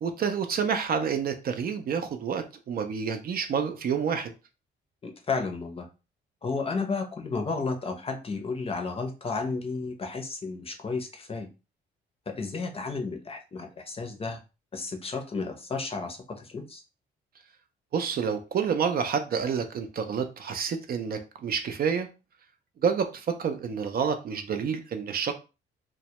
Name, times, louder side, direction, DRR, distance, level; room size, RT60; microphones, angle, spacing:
voice 1, 0.0-4.3 17.9-22.1 22.8-25.3, right 6 dB, 50° right, 7 dB, 0.4 m, -28 dB
voice 2, 5.0-5.9 6.4-11.5 12.4-14.4 14.7-16.8, left 4 dB, 30° left, 4 dB, 0.6 m, -32 dB
2.1 x 2.1 x 2.8 m, 0.30 s
cardioid pair, 90°, 20 cm